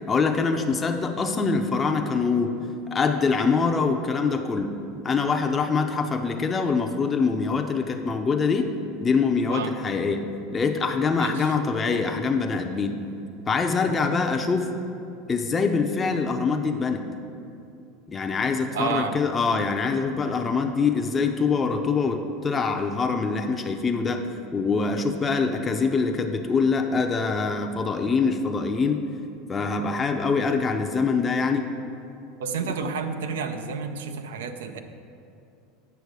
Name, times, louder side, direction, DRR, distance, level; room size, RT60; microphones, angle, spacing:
voice 1, 0.1-2.5 2.9-4.8 5.0-8.7 9.0-10.3 10.5-13.0 13.5-14.7 15.3-17.1 18.1-24.2 24.5-29.0 29.5-31.7, left 4 dB, 25° left, 3 dB, 0.5 m, -24 dB
voice 2, 11.2-11.5 18.7-19.2 32.4-34.8, right 6 dB, 85° right, 8 dB, 0.5 m, -30 dB
8.1 x 6.2 x 4.8 m, 2.6 s
supercardioid pair, 105°, 0 cm